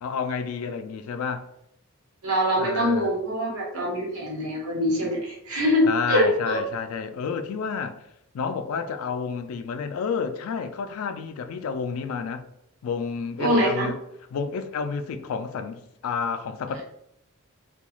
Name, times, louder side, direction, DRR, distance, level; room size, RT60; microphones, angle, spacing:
voice 1, 0.0-1.5 2.6-3.1 5.8-8.0 8.3-12.4 12.8-14.0 14.3-16.8, left 5 dB, 75° left, 0.3 m, -30 dB
voice 2, 2.2-6.6 13.4-13.9, equal, 85° right, 1.1 m, -24 dB
2.3 x 2.3 x 3.0 m
head